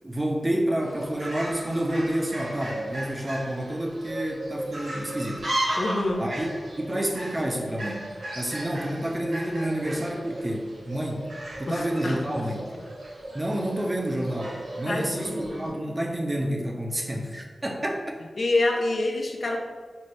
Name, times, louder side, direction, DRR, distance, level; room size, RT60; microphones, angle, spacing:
voice 1, 0.0-5.4 6.2-6.5 6.8-11.3 11.6-12.7 13.3-18.0, right 1 dB, 20° right, 1 dB, 0.5 m, -29 dB
Fowl, 0.8-15.7, right 1 dB, 90° right, 1.3 m, -35 dB
voice 2, 5.8-6.3 11.7-12.2 14.9-15.7 18.4-19.6, left 2 dB, 60° left, 2 dB, 0.4 m, -27 dB
4.3 x 2.5 x 3.1 m, 1.5 s
wide cardioid pair, 105°, 0 cm